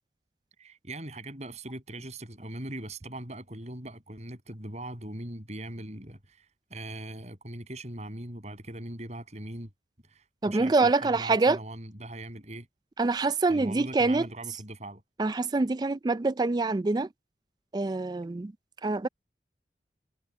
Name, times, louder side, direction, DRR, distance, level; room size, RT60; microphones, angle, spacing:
voice 1, 0.6-9.7 10.0-12.7 13.5-15.0, right 1 dB, 40° right, 7.4 m, -40 dB
voice 2, 10.4-11.6 13.0-14.3 15.2-17.1 17.7-18.5 18.8-19.1, right 3 dB, 25° right, 0.4 m, -25 dB
head